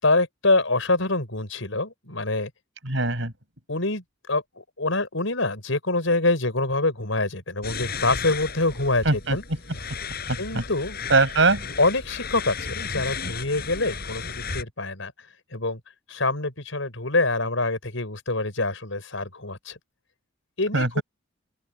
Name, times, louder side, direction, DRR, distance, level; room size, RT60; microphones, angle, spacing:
voice 1, 0.0-2.5 3.7-9.0 9.3-9.4 10.4-11.0 11.8-15.1 15.5-15.8 16.1-19.8 20.6-21.0, left 2 dB, 70° left, 6.6 m, -25 dB
voice 2, 2.8-3.3 9.0-9.4 10.3-10.6 11.1-11.6 20.7-21.0, right 3 dB, 65° right, 6.6 m, -21 dB
sound 1, 7.6-14.6, left 5 dB, 50° left, 8.0 m, -34 dB
open air
head